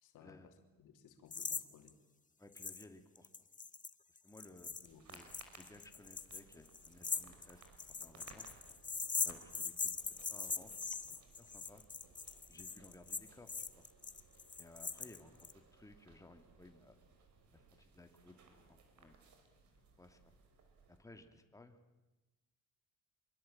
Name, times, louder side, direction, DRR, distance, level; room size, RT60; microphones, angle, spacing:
voice 1, 0.0-2.0 4.4-5.1, left 7 dB, 85° left, 5 dB, 3.1 m, -62 dB
sound 1, 1.3-1.6 1.9-2.0 2.6-2.8 3.1-15.5, left 5 dB, 25° left, 1.4 m, -41 dB
voice 2, 2.4-3.3 4.2-4.8 5.1-5.3 5.6-8.5 9.2-10.7 11.1-11.8 12.5-13.8 14.6-17.0 17.5-18.4 18.7-19.1 20.0-20.3 20.9-21.8, left 2 dB, 10° left, 5 dB, 2.6 m, -59 dB
sound 2, 4.6-21.0, right 4 dB, 70° right, 5.6 m, -63 dB
25.5 x 23.0 x 8.9 m, 1.1 s
cardioid pair, 90°, 30 cm